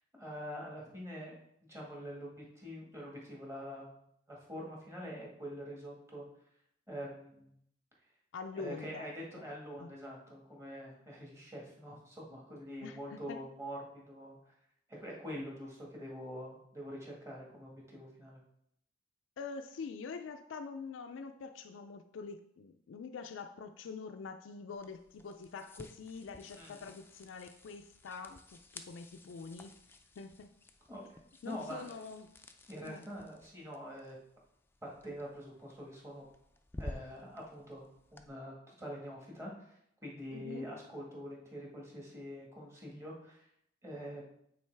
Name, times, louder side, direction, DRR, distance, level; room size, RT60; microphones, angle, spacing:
voice 1, 0.1-1.4 1.7-4.0 4.3-6.3 6.9-7.5 8.5-14.5 14.9-18.4 26.5-26.8 30.9-31.2 31.4-31.9 32.7-34.2 34.8-36.3 36.8-43.5 43.8-44.3, equal, 15° right, -3 dB, 1.5 m, -45 dB
voice 2, 8.3-9.1 9.8-9.9 12.3-12.4 12.8-13.4 19.4-29.8 30.2-30.5 31.4-32.3 32.8-33.0 40.3-40.7, left 5 dB, 85° left, 7 dB, 0.4 m, -45 dB
sound 1, 24.7-38.3, left 2 dB, 10° left, 0.4 m, -53 dB
8.5 x 3.9 x 3.3 m, 0.74 s
head